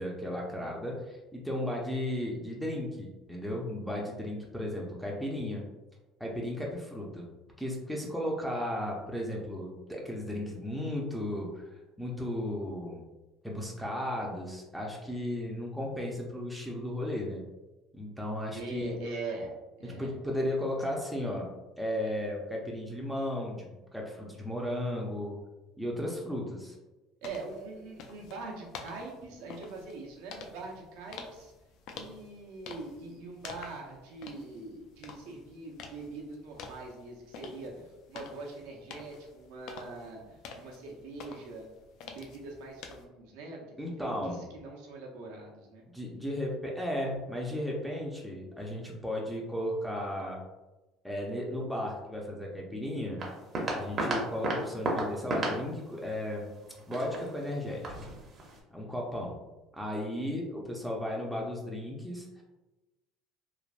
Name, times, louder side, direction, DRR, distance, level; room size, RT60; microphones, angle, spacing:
voice 1, 0.0-5.6 6.2-7.3 7.6-13.1 13.4-17.4 17.9-18.9 19.8-21.5 21.8-25.4 25.8-26.7 43.8-44.4 45.9-50.4 51.0-53.3 53.7-56.5 56.9-57.8 58.7-59.4 59.8-62.4, left 1 dB, ahead, -2 dB, 0.5 m, -35 dB
voice 2, 18.5-20.2 27.2-31.5 31.9-41.7 42.0-45.9, right 3 dB, 85° right, -1 dB, 0.7 m, -43 dB
sound 1, 27.2-43.1, left 5 dB, 65° left, 0.3 m, -49 dB
sound 2, 53.2-58.6, right 2 dB, 35° right, 0.7 m, -35 dB
3.2 x 2.0 x 2.4 m, 1.1 s
cardioid pair, 120°, 0 cm